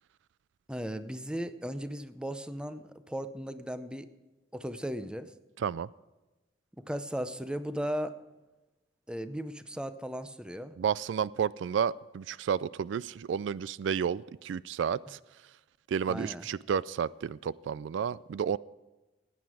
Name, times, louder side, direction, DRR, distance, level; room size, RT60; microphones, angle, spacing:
voice 1, 0.7-4.1 4.5-5.3 6.9-8.1 9.1-10.7 16.1-16.4, equal, 5° right, 11 dB, 0.6 m, -36 dB
voice 2, 5.6-5.9 10.8-15.2 15.9-18.6, right 7 dB, 90° right, 20 dB, 0.3 m, -31 dB
16.5 x 9.2 x 4.8 m, 1.1 s
head